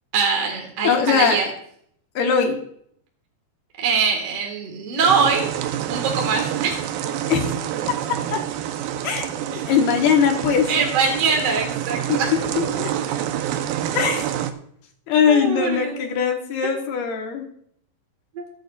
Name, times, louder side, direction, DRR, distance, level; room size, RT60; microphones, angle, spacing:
voice 1, 0.1-1.5 3.8-5.5 5.9-6.8 9.5-9.6 10.7-12.3 15.3-16.1 18.4-18.5, right 5 dB, 50° right, 1 dB, 2.3 m, -22 dB
voice 2, 0.8-1.4 2.2-2.6 7.3-7.4 8.3-8.4 9.0-10.7 12.1-12.9 13.9-14.3 15.1-17.5, left 7 dB, 75° left, 2 dB, 3.2 m, -21 dB
sound 1, 5.0-14.5, right 11 dB, 80° right, 2.3 m, -27 dB
22.5 x 9.1 x 2.5 m, 0.67 s
omnidirectional pair, 4.7 m